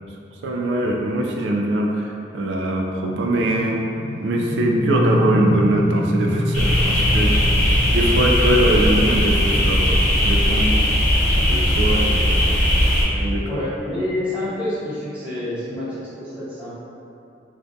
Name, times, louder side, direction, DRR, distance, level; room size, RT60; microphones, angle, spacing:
voice 1, 0.4-3.9 4.2-7.6 7.9-10.7 11.4-12.4 13.1-13.6, right 1 dB, 80° right, 1 dB, 0.3 m, -22 dB
sound 1, 3.0-14.5, left 1 dB, 75° left, 0.6 m, -27 dB
sound 2, 6.5-13.0, equal, 45° left, 0.8 m, -18 dB
voice 2, 13.5-16.7, left 1 dB, 5° right, -12 dB, 0.8 m, -28 dB
2.4 x 2.2 x 3.8 m, 2.6 s
head